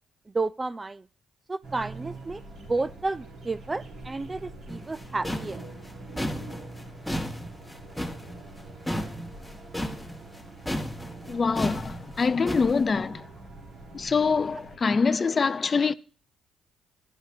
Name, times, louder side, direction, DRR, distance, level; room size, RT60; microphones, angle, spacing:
voice 1, 0.3-1.0 1.5-2.4 2.7-5.6 14.5-14.6, right 3 dB, 20° right, 0.4 m, -31 dB
sound 1, 1.6-14.8, right 2 dB, 65° right, 3.4 m, -44 dB
sound 2, 4.7-10.4 10.7-12.9, equal, 5° left, 1.3 m, -33 dB
voice 2, 11.3-13.2 13.9-15.9, left 5 dB, 35° left, 0.4 m, -24 dB
11.0 x 9.7 x 2.7 m
cardioid pair, 90°, 0 cm